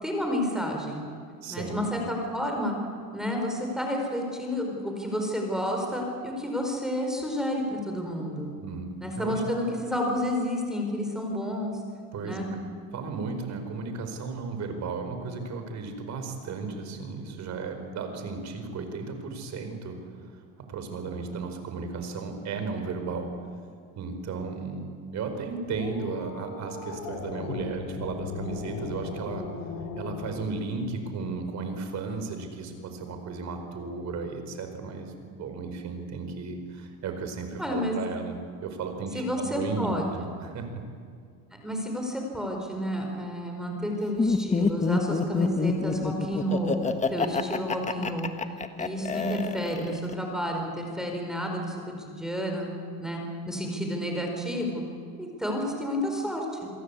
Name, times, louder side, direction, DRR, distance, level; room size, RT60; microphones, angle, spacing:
voice 1, 0.0-1.0 1.5-2.7 3.1-8.5 9.0-11.8 12.2-12.5 37.6-37.9 39.1-40.3 41.6-46.8 47.1-48.3 48.8-52.7 53.0-54.8 55.2-56.7, equal, ahead, 2 dB, 4.6 m, -30 dB
voice 2, 1.4-1.8 8.6-9.4 12.1-12.7 12.9-20.4 20.7-23.3 23.9-29.4 29.9-38.4 38.6-40.8, right 4 dB, 45° right, 6 dB, 4.8 m, -35 dB
sound 1, 25.7-30.5, left 4 dB, 85° left, 4.3 m, -37 dB
Laughter, 44.2-50.1, left 4 dB, 20° left, 1.4 m, -27 dB
28.0 x 22.0 x 8.4 m, 2.2 s
cardioid pair, 135°, 39 cm